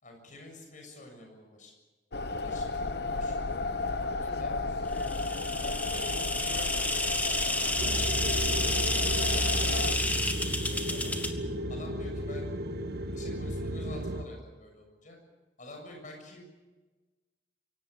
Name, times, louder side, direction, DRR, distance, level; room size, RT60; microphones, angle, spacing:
voice 1, 0.0-1.7 2.3-3.6 4.2-4.6 5.9-11.1 11.7-12.5 13.1-15.2 15.6-16.4, left 1 dB, 45° left, 3 dB, 7.0 m, -49 dB
sound 1, 2.1-10.0, left 3 dB, 60° left, 1.0 m, -33 dB
sound 2, 5.0-11.3, left 2 dB, 10° left, 1.8 m, -30 dB
sound 3, 7.8-14.2, right 1 dB, 60° right, 1.5 m, -33 dB
24.5 x 18.0 x 8.2 m, 1.2 s
head